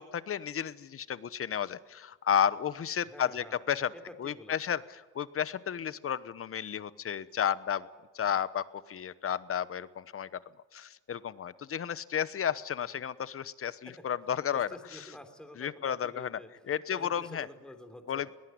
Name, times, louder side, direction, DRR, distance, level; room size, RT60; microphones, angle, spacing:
voice 1, 0.0-3.9 4.2-7.9 8.1-10.3 10.7-15.1 15.6-16.4 16.7-17.5 18.1-18.3, left 8 dB, 45° left, 16 dB, 1.0 m, -32 dB
voice 2, 3.1-3.6 3.9-4.6 13.9-14.0 14.5-16.5 16.9-18.3, left 1 dB, 5° left, 6 dB, 3.5 m, -48 dB
22.0 x 18.0 x 9.5 m, 1.3 s
cardioid pair, 90°, 30 cm